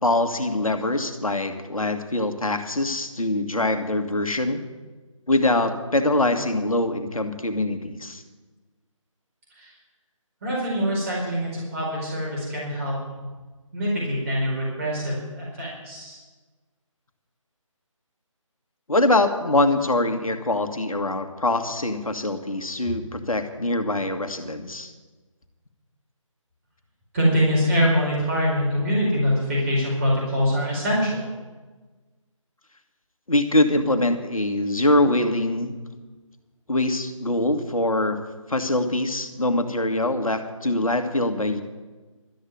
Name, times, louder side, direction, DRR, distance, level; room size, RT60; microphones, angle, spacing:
voice 1, 0.0-4.6 5.3-8.2 18.9-24.9 33.3-35.7 36.7-38.2 38.5-41.6, left 1 dB, 90° left, 7 dB, 1.8 m, -23 dB
voice 2, 10.4-13.0 13.7-16.2 27.1-31.2, equal, 25° right, -5 dB, 4.5 m, -24 dB
13.0 x 8.4 x 9.3 m, 1.3 s
figure-of-eight pair, 160°, 17 cm